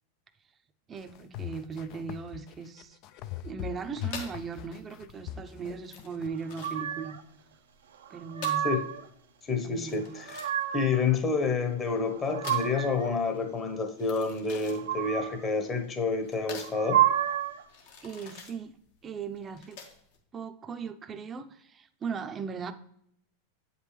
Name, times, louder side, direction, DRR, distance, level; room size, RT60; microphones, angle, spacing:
sound 1, 0.9-6.3, left 12 dB, 50° left, 0.5 m, -39 dB
voice 1, 0.9-3.0 3.4-7.2 8.1-8.7 9.6-10.1 18.0-18.7 19.0-19.8 20.3-22.7, right 5 dB, 25° right, 0.6 m, -38 dB
sound 2, 4.1-20.2, left 5 dB, 70° left, 1.6 m, -47 dB
sound 3, 6.6-7.2 8.0-9.0 10.0-11.0 11.9-13.1 14.6-15.5 16.6-17.6, right 11 dB, 85° right, 0.7 m, -30 dB
voice 2, 9.5-10.4 10.7-17.0, left 4 dB, 25° left, 1.1 m, -29 dB
8.1 x 5.4 x 3.2 m
hypercardioid pair, 110°, 0 cm